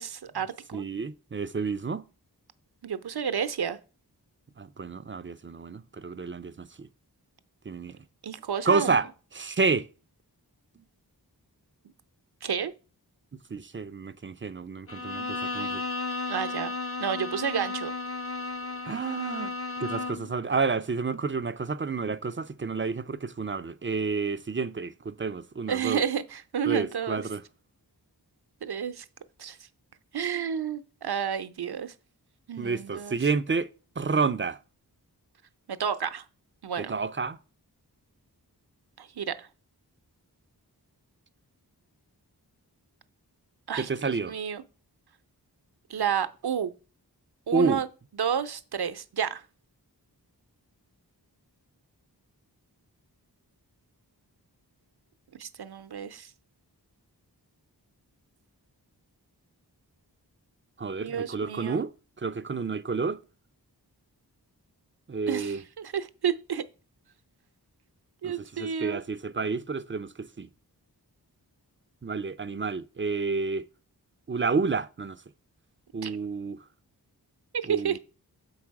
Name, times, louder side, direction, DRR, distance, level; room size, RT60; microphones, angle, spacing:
voice 1, 0.0-0.8 2.8-3.8 8.2-9.0 12.4-12.7 15.1-15.2 15.5-15.7 16.3-16.7 17.0-17.9 25.7-27.2 28.6-29.0 29.4-29.6 30.1-31.9 32.5-33.2 35.7-36.2 36.6-36.9 39.0-39.5 43.7-44.6 45.9-46.7 47.5-47.9 48.2-49.4 55.4-56.3 61.0-61.8 65.3-66.6 68.2-69.0 76.0-76.2 77.5-78.0, right 8 dB, 70° right, 0.7 m, -31 dB
voice 2, 0.7-2.0 4.6-6.9 7.7-8.0 8.7-9.1 9.3-9.9 13.5-15.8 18.8-19.5 19.8-26.0 26.6-27.4 32.6-33.7 34.0-34.6 36.8-37.4 43.8-44.3 47.5-47.8 60.8-61.9 62.2-63.2 65.1-65.6 68.2-70.5 72.0-73.7 74.3-75.2 75.9-76.6 77.6-78.0, right 4 dB, 30° right, 0.4 m, -30 dB
Bowed string instrument, 14.9-20.3, left 3 dB, 35° left, 0.5 m, -34 dB
6.9 x 4.8 x 4.7 m
wide cardioid pair, 45°, 40 cm